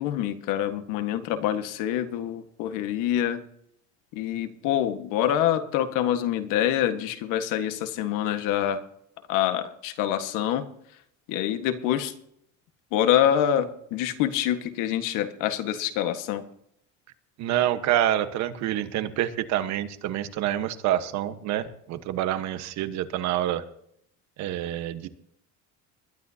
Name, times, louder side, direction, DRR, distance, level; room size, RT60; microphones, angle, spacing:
voice 1, 0.0-3.4 4.1-8.8 9.3-10.6 11.3-12.1 12.9-16.4, left 11 dB, 85° left, 8 dB, 1.7 m, -26 dB
voice 2, 17.4-23.6 24.4-25.1, right 12 dB, 65° right, 10 dB, 1.3 m, -27 dB
20.5 x 12.5 x 2.9 m, 0.70 s
cardioid pair, 150°, 31 cm